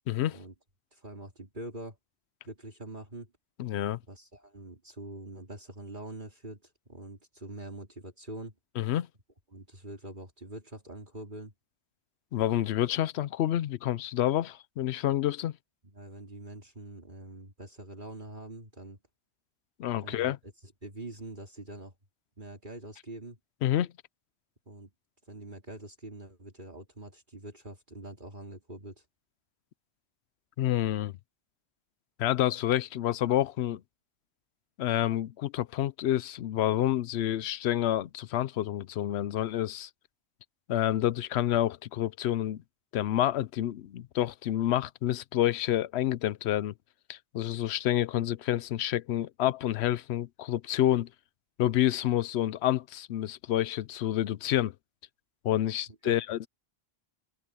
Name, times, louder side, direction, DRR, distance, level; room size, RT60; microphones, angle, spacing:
voice 1, 0.1-0.4 3.6-4.0 8.8-9.1 12.3-15.5 19.8-20.4 23.6-23.9 30.6-31.1 32.2-33.8 34.8-39.9 40.7-42.6 42.9-46.7 47.1-51.1 51.6-54.7 55.4-56.5, left 12 dB, 85° left, 0.9 m, -28 dB
voice 2, 0.9-2.0 2.4-3.3 4.1-8.5 9.5-11.5 15.8-19.0 20.0-21.9 22.4-23.4 24.7-24.9 25.3-29.0 55.9-56.2, right 1 dB, 50° right, 3.7 m, -44 dB
omnidirectional pair, 1.1 m